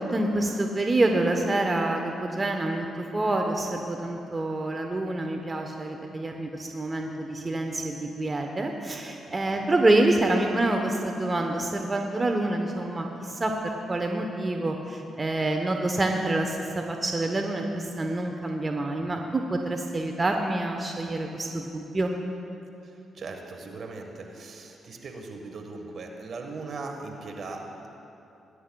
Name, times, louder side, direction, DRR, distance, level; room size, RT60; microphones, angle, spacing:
voice 1, 0.1-2.9 3.1-13.5 13.9-22.1, right 2 dB, 30° right, 3 dB, 0.9 m, -27 dB
voice 2, 22.8-27.9, right 3 dB, 60° right, 2 dB, 1.4 m, -39 dB
19.0 x 10.0 x 2.3 m, 2.9 s
hypercardioid pair, 45°, 0 cm